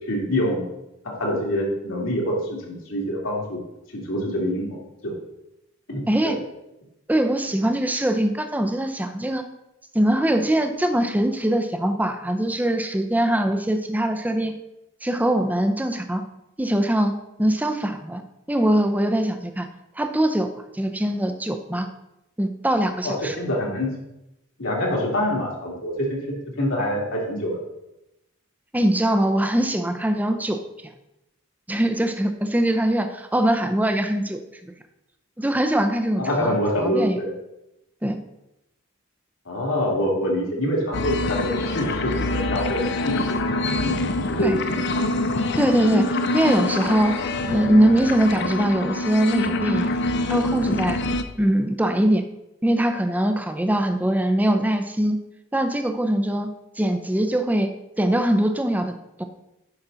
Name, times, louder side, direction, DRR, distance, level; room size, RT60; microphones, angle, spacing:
voice 1, 0.1-0.6 1.0-3.6 3.9-4.8 5.0-5.1 5.9-6.3 23.0-23.9 24.6-27.6 36.2-37.3 39.5-43.4 43.7-44.0 44.3-44.8, equal, 75° left, -3 dB, 2.5 m, -25 dB
voice 2, 6.1-6.4 7.1-9.4 9.9-14.5 15.0-16.2 16.6-17.1 17.4-18.2 18.5-19.7 20.0-21.9 22.4-23.4 28.7-30.6 31.7-34.7 35.4-37.2 38.0-38.2 44.4-44.6 45.6-47.2 47.5-50.0 50.3-51.0 51.4-52.2 52.6-55.2 55.5-56.5 56.8-59.2, right 1 dB, 10° right, 7 dB, 0.6 m, -22 dB
sound 1, 40.9-51.2, left 2 dB, 55° left, 0.6 m, -25 dB
9.7 x 6.0 x 3.9 m, 0.89 s
head